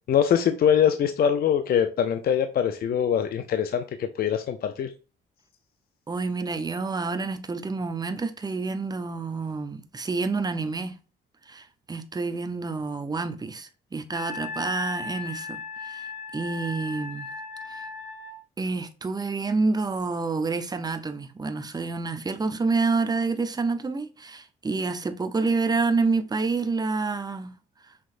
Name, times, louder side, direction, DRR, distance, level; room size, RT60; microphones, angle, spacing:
voice 1, 0.1-4.9, left 8 dB, 50° left, 0.5 m, -23 dB
voice 2, 6.1-10.9 11.5-16.1 16.3-17.3 17.7-17.8 18.6-27.5, right 4 dB, 20° right, 0.6 m, -28 dB
Wind instrument woodwind instrument, 14.1-18.4, left 4 dB, 80° left, 1.9 m, -36 dB
5.8 x 3.1 x 2.5 m
cardioid pair, 90°, 20 cm